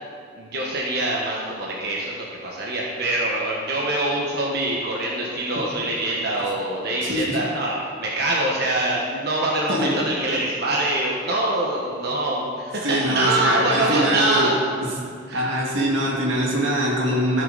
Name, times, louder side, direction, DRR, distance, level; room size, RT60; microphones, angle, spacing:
voice 1, 0.4-14.5 15.3-15.4, right 1 dB, 55° right, -3 dB, 1.3 m, -24 dB
voice 2, 7.0-7.4 9.7-10.0 12.8-15.0 15.3-17.4, right 1 dB, 85° right, -2 dB, 2.1 m, -23 dB
14.0 x 7.0 x 4.1 m, 2.3 s
head